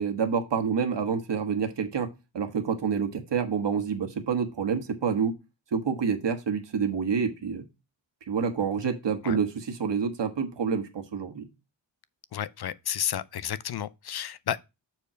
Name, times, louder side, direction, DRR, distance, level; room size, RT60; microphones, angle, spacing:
voice 1, 0.0-2.1 2.3-5.3 5.7-7.6 8.3-11.5, right 6 dB, 70° right, 1.5 m, -28 dB
voice 2, 12.3-14.6, left 10 dB, 60° left, 0.5 m, -31 dB
7.2 x 4.5 x 5.0 m
wide cardioid pair, 135°, 45 cm